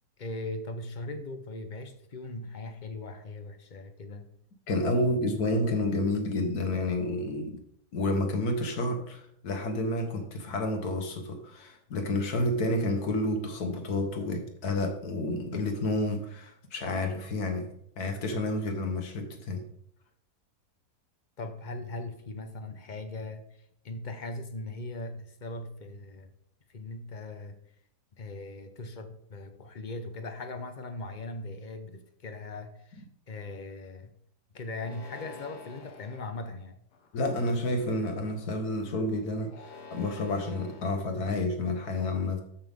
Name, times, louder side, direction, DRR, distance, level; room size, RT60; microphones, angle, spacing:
voice 1, 0.2-4.3 21.4-26.3 26.7-27.6 28.1-34.1 34.5-36.8, left 2 dB, 40° left, 8 dB, 0.7 m, -39 dB
voice 2, 4.7-7.6 7.9-17.7 18.0-19.6 37.1-42.4, left 1 dB, 70° left, 5 dB, 1.8 m, -30 dB
sound 1, 34.7-36.2 36.9-37.4 39.4-40.9, left 4 dB, 90° left, 1.9 m, -48 dB
13.0 x 5.6 x 3.6 m, 0.71 s
omnidirectional pair, 1.7 m